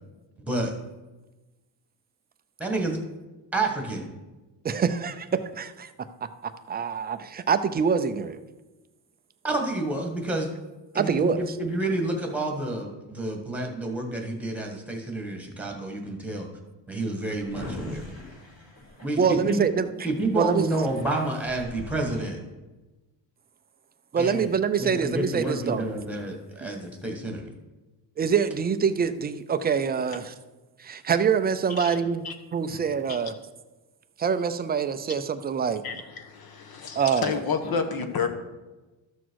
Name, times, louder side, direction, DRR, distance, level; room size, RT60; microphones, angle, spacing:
voice 1, 2.6-3.0 3.5-4.1 9.4-10.5 10.9-16.5 16.9-18.1 19.0-19.6 20.0-22.4 24.2-24.5 24.8-27.5, right 2 dB, 5° right, 2 dB, 1.6 m, -29 dB
voice 2, 4.6-5.9 6.4-8.4 10.9-11.4 19.2-20.6 24.1-25.8 26.6-26.7 28.2-30.3 30.8-33.3 34.2-35.8 37.0-37.3, right 6 dB, 20° right, 10 dB, 0.4 m, -25 dB
Drawer open or close, 17.0-19.8 20.3-20.4 20.6-22.3, left 2 dB, 35° left, 3.5 m, -42 dB
voice 3, 35.8-38.3, left 5 dB, 50° left, 6 dB, 1.3 m, -30 dB
13.0 x 6.2 x 4.7 m, 1.1 s
cardioid pair, 135°, 47 cm